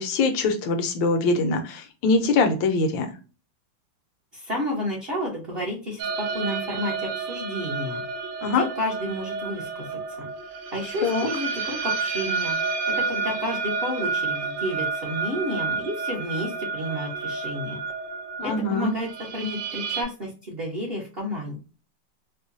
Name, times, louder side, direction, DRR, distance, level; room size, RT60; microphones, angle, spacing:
voice 1, 0.0-3.1 8.4-8.6 11.0-11.3 18.4-18.9, left 3 dB, 75° left, 6 dB, 1.4 m, -23 dB
voice 2, 4.3-8.0 8.4-9.9 10.2-10.3 10.7-12.6 12.9-17.8 18.4-21.6, equal, 40° right, -3 dB, 0.9 m, -31 dB
sound 1, 6.0-20.0, right 5 dB, 75° right, 1.2 m, -30 dB
4.8 x 2.2 x 2.5 m, 0.35 s
omnidirectional pair, 2.1 m